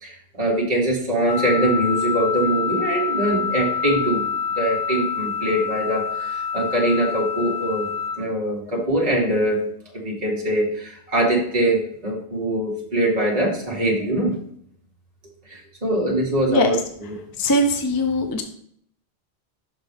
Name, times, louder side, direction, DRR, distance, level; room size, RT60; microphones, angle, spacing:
voice 1, 0.0-4.3 4.6-9.6 9.9-14.4 15.5-16.8 17.1-17.2, right 1 dB, 40° right, -4 dB, 1.7 m, -23 dB
Wind instrument woodwind instrument, 1.3-8.2, left 6 dB, 60° left, 1.6 m, -27 dB
voice 2, 17.4-18.4, left 1 dB, 25° left, 4 dB, 0.6 m, -20 dB
6.1 x 5.8 x 3.5 m, 0.64 s
omnidirectional pair, 1.1 m